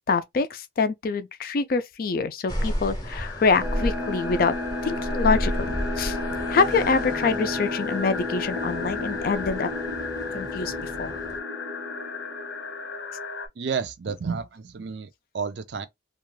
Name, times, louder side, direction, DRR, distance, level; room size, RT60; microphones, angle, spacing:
voice 1, 0.1-4.5 4.8-6.2 6.5-9.7 10.3-11.2, left 4 dB, 50° left, 0.3 m, -25 dB
sound 1, 2.5-11.4, equal, 20° left, 0.7 m, -33 dB
sound 2, 3.2-13.5, left 5 dB, 85° left, 0.7 m, -36 dB
sound 3, 3.6-12.9, left 1 dB, 15° right, 0.6 m, -33 dB
voice 2, 13.6-15.9, right 5 dB, 65° right, 0.4 m, -31 dB
2.4 x 2.2 x 3.1 m
head